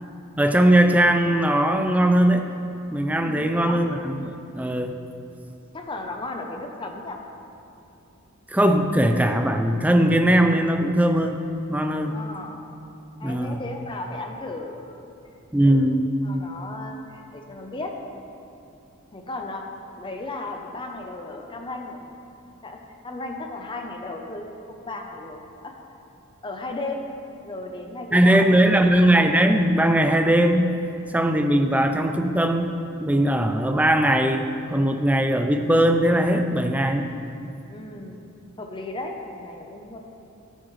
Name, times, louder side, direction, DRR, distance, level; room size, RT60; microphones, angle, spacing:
voice 1, 0.4-2.5 2.9-5.0 8.5-11.4 11.7-12.2 13.2-13.6 15.5-16.1 28.1-30.7 31.1-37.1, right 1 dB, 5° right, 6 dB, 0.5 m, -20 dB
voice 2, 3.2-3.8 5.7-7.2 12.1-12.6 13.2-15.0 15.6-17.9 19.1-19.6 20.0-22.1 22.6-22.8 23.0-25.7 26.4-27.0 27.4-28.9 37.7-38.3 38.6-40.0, left 2 dB, 25° left, 2 dB, 0.8 m, -35 dB
13.5 x 9.0 x 3.2 m, 2.7 s
head